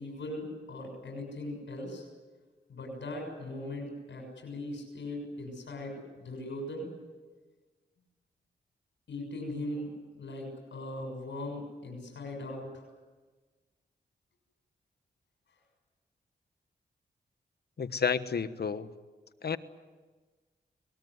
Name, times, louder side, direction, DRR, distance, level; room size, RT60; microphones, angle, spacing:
voice 1, 0.0-2.1 2.7-6.9 9.1-12.9, left 1 dB, 85° left, 1 dB, 6.7 m, -39 dB
voice 2, 17.8-18.9 19.4-19.6, left 6 dB, 60° left, 12 dB, 1.3 m, -30 dB
23.5 x 20.5 x 9.5 m, 1.3 s
cardioid pair, 55°, 19 cm